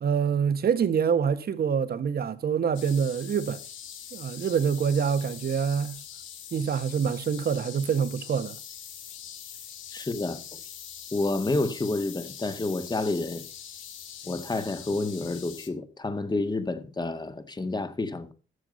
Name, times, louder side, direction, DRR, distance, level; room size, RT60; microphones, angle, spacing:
voice 1, 0.0-3.6 4.1-6.0 6.5-8.6, right 7 dB, 50° right, 1.4 m, -26 dB
sound 1, 2.7-15.7, left 9 dB, 80° left, 2.2 m, -43 dB
voice 2, 9.9-10.6 11.1-13.4 14.3-18.3, left 2 dB, 20° left, 1.8 m, -29 dB
13.5 x 7.5 x 5.3 m
cardioid pair, 90°, 20 cm